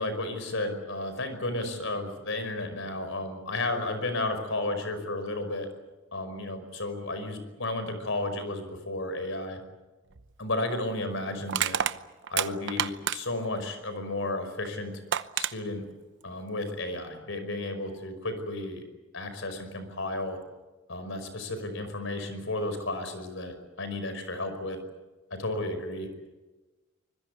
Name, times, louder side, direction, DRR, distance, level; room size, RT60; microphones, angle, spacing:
voice 1, 0.0-5.7 6.1-9.6 10.4-11.8 12.3-15.0 15.4-15.8 16.2-18.8 19.1-20.4 20.9-24.8 25.3-26.1, left 2 dB, 70° left, 9 dB, 5.5 m, -33 dB
Crushing, 10.1-10.3 11.5-13.5 14.6-14.7 15.1-15.5, right 9 dB, 60° right, 0.9 m, -29 dB
25.0 x 22.0 x 8.4 m, 1.2 s
head